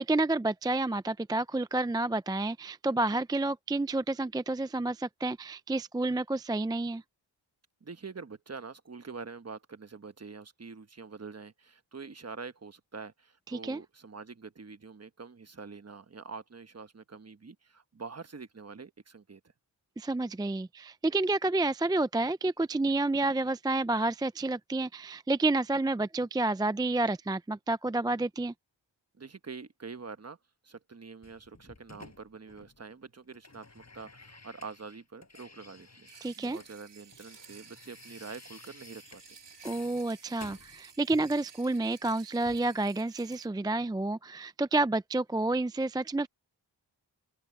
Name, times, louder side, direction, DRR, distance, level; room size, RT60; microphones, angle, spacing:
voice 1, 0.0-7.0 13.5-13.8 20.0-28.5 36.2-36.6 39.6-46.3, right 2 dB, 10° right, 0.3 m, -29 dB
voice 2, 7.8-19.4 29.1-30.4 30.6-39.4, right 4 dB, 35° right, 1.2 m, -45 dB
sound 1, 31.2-32.9 33.2-36.7 37.0-41.4 42.4-42.6, left 3 dB, 35° left, 7.2 m, -54 dB
sound 2, 36.1-43.5, right 6 dB, 70° right, 3.2 m, -55 dB
open air
wide cardioid pair, 75°, 44 cm